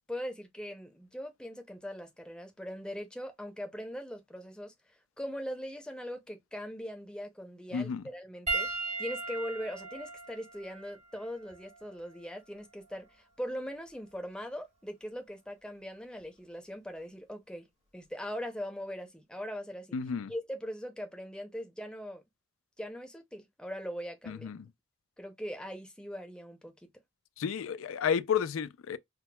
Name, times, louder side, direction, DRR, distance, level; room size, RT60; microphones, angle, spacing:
voice 1, 0.1-4.7 5.2-8.7 9.0-13.1 13.4-17.7 17.9-20.0 20.3-22.2 22.8-24.5 25.2-26.7, equal, 5° left, 0.6 m, -40 dB
voice 2, 7.7-8.0 19.9-20.3 24.3-24.7 27.4-29.0, left 7 dB, 85° left, 0.4 m, -31 dB
Piano, 8.5-13.1 14.1-14.3 16.2-16.3, right 3 dB, 30° right, 0.8 m, -38 dB
5.8 x 2.1 x 2.2 m
head